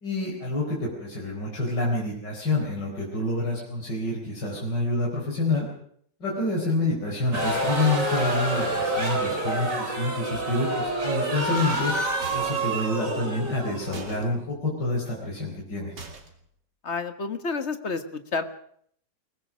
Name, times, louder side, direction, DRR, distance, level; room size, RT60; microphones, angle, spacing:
voice 1, 0.0-5.7 6.2-11.9 12.3-15.9, left 2 dB, 75° left, -2 dB, 5.0 m, -28 dB
sound 1, 7.3-14.5, right 1 dB, 45° right, 4.2 m, -28 dB
sound 2, 12.2-12.7 13.9-14.2 16.0-16.5, right 3 dB, 75° right, 3.1 m, -42 dB
voice 2, 16.8-18.4, left 4 dB, 40° left, 9 dB, 1.7 m, -30 dB
22.0 x 19.5 x 6.3 m, 0.65 s
omnidirectional pair, 1.9 m